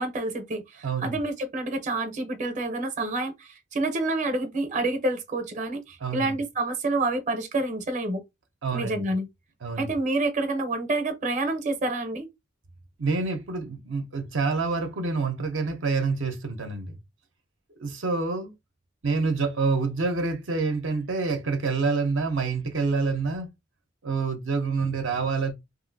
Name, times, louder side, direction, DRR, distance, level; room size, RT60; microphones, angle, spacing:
voice 1, 0.0-8.2 8.7-9.3 9.8-12.3, right 2 dB, 40° right, 0.7 m, -28 dB
voice 2, 0.8-1.2 6.0-6.3 8.6-9.1 9.6-9.9 13.0-17.0 17.8-18.5 19.0-23.5 24.0-25.5, right 4 dB, 75° right, 0.6 m, -27 dB
2.8 x 2.7 x 2.6 m
head